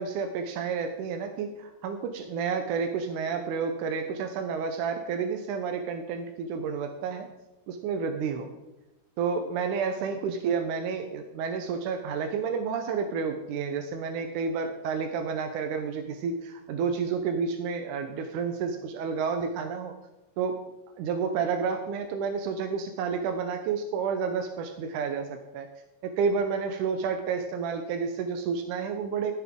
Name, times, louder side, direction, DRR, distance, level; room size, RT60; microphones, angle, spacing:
voice 1, 0.0-7.3 7.7-8.5 9.2-19.9 20.4-20.6 21.0-25.7 26.0-29.3, right 5 dB, 90° right, 6 dB, 2.3 m, -30 dB
15.0 x 9.5 x 3.7 m, 1.0 s
omnidirectional pair, 3.5 m